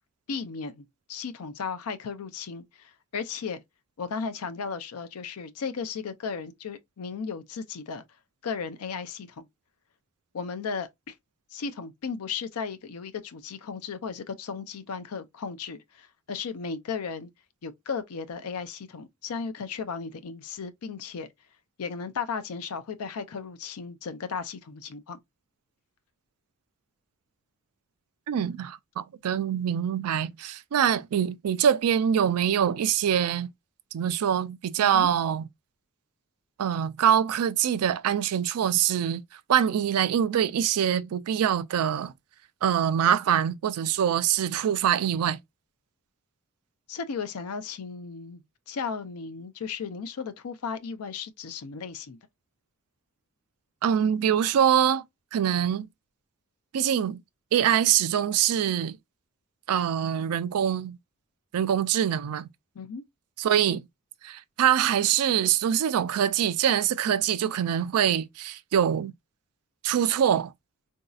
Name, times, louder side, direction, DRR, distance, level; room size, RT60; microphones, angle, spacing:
voice 1, 0.3-3.6 4.0-8.0 8.4-9.5 10.3-11.1 11.5-17.3 17.6-21.3 21.8-25.2 34.8-35.1 46.9-52.2 62.8-63.0, left 5 dB, 85° left, 0.5 m, -35 dB
voice 2, 28.3-33.5 33.9-35.5 36.6-39.2 39.5-42.1 42.6-45.4 53.8-55.0 55.3-55.9 56.7-57.2 57.5-59.0 59.7-61.0 61.5-62.5 63.4-63.8 64.2-69.1 69.8-70.5, right 9 dB, 85° right, 0.4 m, -24 dB
3.9 x 2.7 x 2.3 m
head